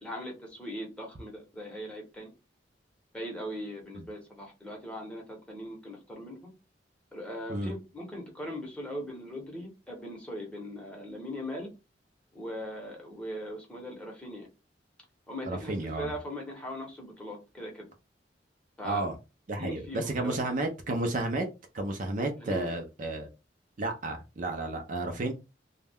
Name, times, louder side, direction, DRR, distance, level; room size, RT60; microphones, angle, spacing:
voice 1, 0.0-2.3 3.1-6.5 7.1-11.7 12.3-14.5 15.3-17.9 18.8-19.1 19.6-20.4 22.4-22.7, equal, 5° left, -1 dB, 0.8 m, -40 dB
voice 2, 15.5-16.1 18.8-19.1 19.5-21.5 21.7-23.3 23.8-25.3, right 2 dB, 45° right, 4 dB, 0.4 m, -32 dB
2.3 x 2.1 x 3.4 m, 0.27 s
head